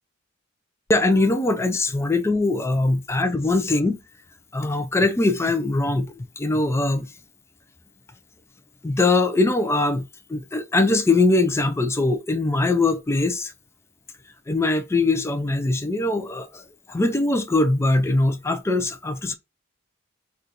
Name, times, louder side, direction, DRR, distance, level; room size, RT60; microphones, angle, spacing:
voice 1, 0.9-4.0 4.5-7.1 8.8-13.5 14.5-16.6 16.9-19.3, left 2 dB, 15° left, 0.3 m, -22 dB
3.8 x 2.3 x 2.8 m
head